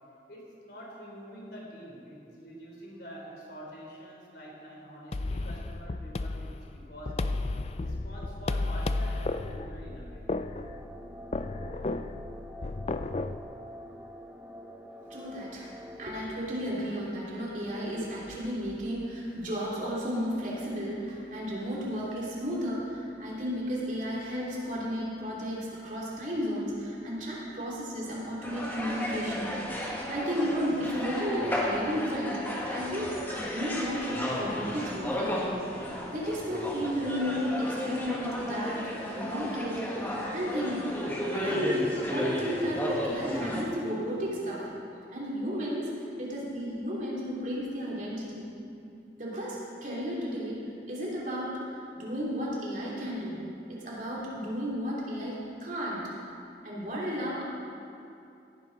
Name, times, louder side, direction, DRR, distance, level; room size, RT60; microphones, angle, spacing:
voice 1, 0.3-7.2 7.8-10.3, equal, 65° left, -3 dB, 3.6 m, -46 dB
sound 1, 5.1-13.4, left 2 dB, 35° left, 0.4 m, -33 dB
sound 2, 10.6-16.2, equal, 10° right, 0.6 m, -46 dB
voice 2, 15.1-15.7 16.0-35.7 36.1-40.9 41.3-44.7 45.1-45.9 46.2-48.5 49.2-50.6 50.9-53.4 53.7-56.0 56.6-57.4, equal, 45° right, -5 dB, 3.0 m, -33 dB
sound 3, 28.4-43.6, equal, 10° left, 1.8 m, -33 dB
17.5 x 11.5 x 4.0 m, 2.6 s
head